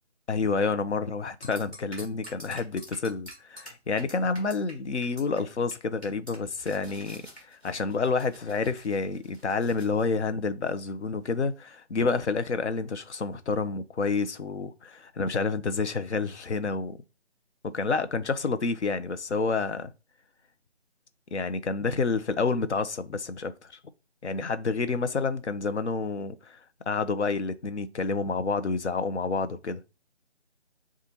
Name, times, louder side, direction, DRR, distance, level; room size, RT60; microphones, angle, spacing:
voice 1, 0.3-17.0 17.7-19.9 21.3-23.7 24.2-29.8, left 4 dB, 75° left, 0.7 m, -29 dB
sound 1, 1.4-4.7 5.0-5.4 5.7-5.8 6.0-10.0, right 1 dB, 10° left, 0.9 m, -47 dB
6.6 x 2.4 x 2.8 m
figure-of-eight pair, 160°, 35 cm